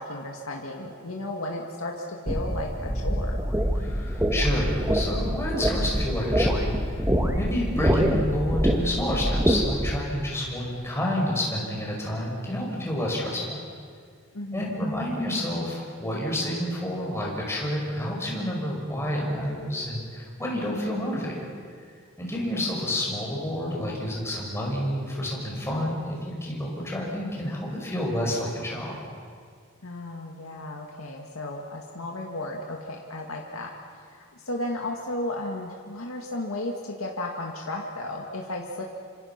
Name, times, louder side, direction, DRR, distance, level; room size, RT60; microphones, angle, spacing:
voice 1, 0.0-3.4 14.3-14.8 22.5-22.7 29.8-33.7 34.1-38.8, left 1 dB, 80° left, 0 dB, 2.1 m, -34 dB
sound 1, 2.3-10.0, equal, 10° right, 1.6 m, -25 dB
voice 2, 3.8-13.6 14.5-21.5 22.2-29.0, left 1 dB, 10° left, -3 dB, 5.9 m, -29 dB
27.5 x 25.5 x 6.0 m, 2.1 s
head